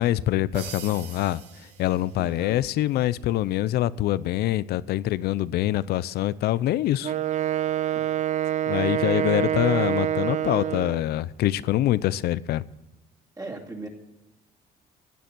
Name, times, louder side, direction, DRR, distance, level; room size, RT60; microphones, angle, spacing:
voice 1, 0.0-1.4 1.8-7.1 8.7-12.6, left 14 dB, 70° left, 0.6 m, -25 dB
sound 1, 0.5-2.6, right 7 dB, 75° right, 3.3 m, -42 dB
voice 2, 2.2-2.6 7.9-8.1 13.4-13.9, right 2 dB, 20° right, 2.7 m, -38 dB
Wind instrument woodwind instrument, 7.0-11.1, right 11 dB, 45° right, 0.6 m, -26 dB
16.5 x 10.5 x 6.1 m
cardioid pair, 110°, 17 cm